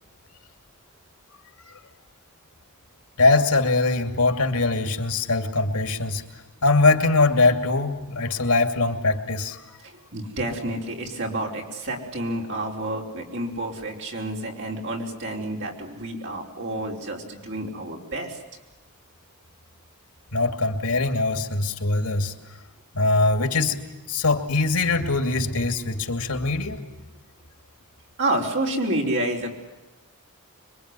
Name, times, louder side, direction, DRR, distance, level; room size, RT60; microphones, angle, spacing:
voice 1, 3.2-6.2 6.6-9.6 20.3-22.3 22.9-23.8 24.1-26.8, left 3 dB, 85° left, 7 dB, 2.6 m, -22 dB
voice 2, 10.1-18.4 28.2-29.5, right 1 dB, 55° right, 0 dB, 4.9 m, -29 dB
26.0 x 23.0 x 9.9 m, 1.1 s
head